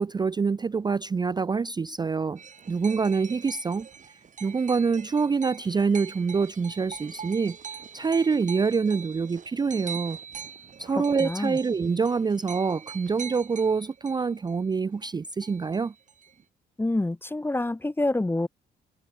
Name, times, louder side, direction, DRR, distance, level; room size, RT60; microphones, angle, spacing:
voice 1, 0.0-2.4 2.7-3.9 4.4-10.2 10.8-15.9, right 5 dB, 20° right, 0.4 m, -26 dB
sound 1, 2.4-15.1 15.4-16.4, right 7 dB, 40° right, 0.9 m, -43 dB
voice 2, 11.0-11.6 16.8-18.5, left 2 dB, 10° left, 0.7 m, -27 dB
supercardioid pair, 70°, 19 cm